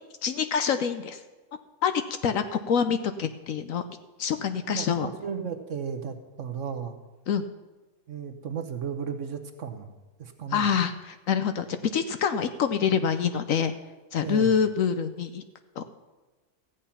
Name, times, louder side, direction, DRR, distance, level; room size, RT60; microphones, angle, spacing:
voice 1, 0.2-1.2 1.8-3.8 4.2-5.1 7.3-7.4 10.5-13.7 14.1-15.4 15.8-15.9, left 7 dB, 65° left, 9 dB, 1.0 m, -26 dB
voice 2, 5.2-7.0 8.1-9.9 10.2-10.7 14.2-14.6, right 7 dB, 55° right, 7 dB, 1.2 m, -34 dB
14.0 x 8.9 x 5.7 m, 1.2 s
omnidirectional pair, 1.7 m